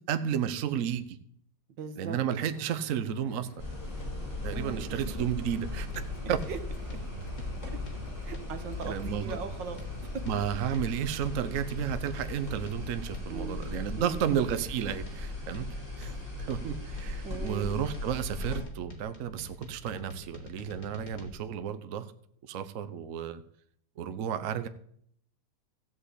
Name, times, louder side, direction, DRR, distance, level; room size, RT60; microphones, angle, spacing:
voice 1, 0.1-1.2 2.0-3.7 4.4-5.9 6.3-6.4 8.8-9.4 10.3-15.7 16.0-22.1 22.4-23.4 24.0-24.7, right 9 dB, 60° right, 11 dB, 1.0 m, -32 dB
voice 2, 1.8-2.2 4.5-5.0 6.5-6.6 8.2-9.8 10.7-10.8 13.3-13.6 14.0-14.5 17.2-17.8, right 5 dB, 80° right, 8 dB, 1.9 m, -39 dB
sound 1, 2.2-10.9, left 1 dB, 65° left, 2.1 m, -50 dB
sound 2, 3.6-18.6, left 2 dB, 10° left, 5.7 m, -38 dB
sound 3, 5.9-21.3, left 2 dB, 35° left, 2.5 m, -47 dB
14.5 x 5.6 x 8.2 m, 0.67 s
omnidirectional pair, 2.0 m